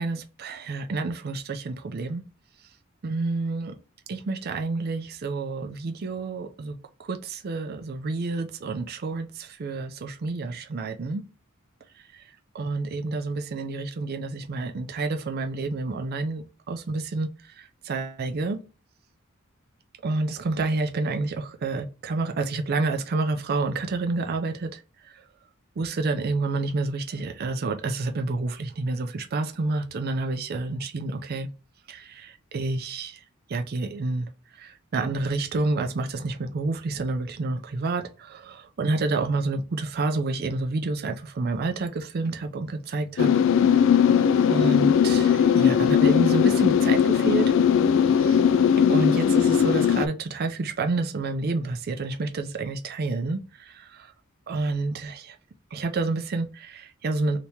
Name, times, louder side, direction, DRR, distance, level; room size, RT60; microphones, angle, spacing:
voice 1, 0.0-2.2 3.0-3.8 4.1-6.8 7.0-11.2 12.1-12.2 12.5-17.3 17.6-18.6 20.0-24.8 25.8-31.5 31.9-33.2 33.5-34.3 34.6-43.3 44.5-47.5 48.1-48.4 48.9-54.1 54.5-55.4 55.7-57.4, right 3 dB, 50° right, 0.4 m, -29 dB
sound 1, 43.2-50.1, left 8 dB, 65° left, 0.3 m, -19 dB
2.9 x 2.8 x 3.4 m
head